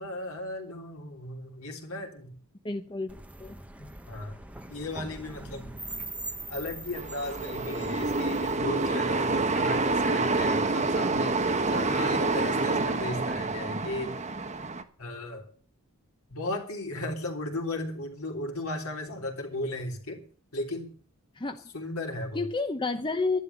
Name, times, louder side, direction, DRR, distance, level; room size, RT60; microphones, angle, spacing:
voice 1, 0.0-2.4 3.8-4.4 4.7-5.8 6.5-11.4 11.7-14.2 15.0-15.5 16.3-20.2 20.5-20.9 21.7-22.5, left 1 dB, 75° left, 3.4 m, -36 dB
voice 2, 2.6-3.6 21.3-21.6 22.3-23.4, left 3 dB, 20° left, 0.8 m, -30 dB
sound 1, 3.1-8.7, right 2 dB, 5° right, 1.1 m, -42 dB
sound 2, 6.9-14.8, right 3 dB, 30° right, 1.2 m, -27 dB
11.5 x 11.5 x 7.0 m
head